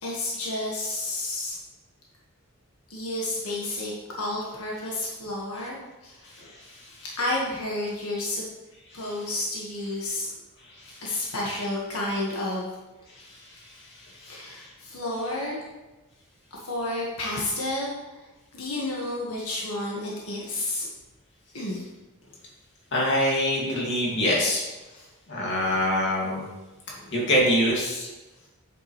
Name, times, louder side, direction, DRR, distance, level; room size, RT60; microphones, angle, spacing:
voice 1, 0.0-1.6 2.9-6.5 7.0-8.4 8.9-10.3 11.0-12.7 14.2-15.7 16.5-17.9 18.5-20.9 21.5-21.8 24.9-25.1 25.4-25.8 26.9-27.1, left 1 dB, 85° left, -4 dB, 1.6 m, -31 dB
voice 2, 22.9-24.7 25.3-26.5 27.1-28.1, equal, 55° left, -4 dB, 2.3 m, -24 dB
8.4 x 7.0 x 3.2 m, 1.1 s
head